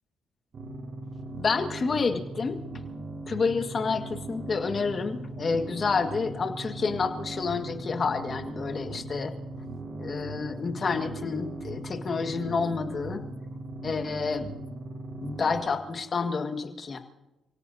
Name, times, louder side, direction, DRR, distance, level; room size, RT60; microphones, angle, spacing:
sound 1, 0.5-15.6, right 2 dB, 45° right, 5.9 m, -39 dB
voice 1, 1.4-2.6 3.3-9.3 10.0-13.2 13.8-14.5 15.2-17.0, left 4 dB, 40° left, 5 dB, 1.8 m, -29 dB
30.0 x 17.5 x 2.8 m, 1.0 s
cardioid pair, 90°, 0 cm